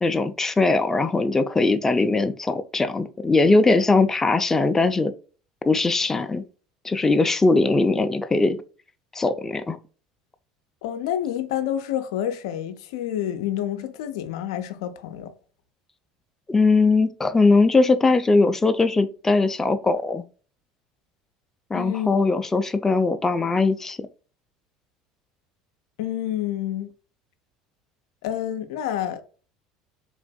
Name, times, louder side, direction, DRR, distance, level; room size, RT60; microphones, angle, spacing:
voice 1, 0.0-5.1 5.7-6.4 6.8-8.6 9.1-9.8 16.5-20.2 21.7-24.0, left 3 dB, 15° left, 0.4 m, -20 dB
voice 2, 10.8-15.3 21.7-22.1 26.0-26.9 28.2-29.2, left 11 dB, 80° left, 0.4 m, -28 dB
3.4 x 2.5 x 2.2 m
hypercardioid pair, 85°, 3 cm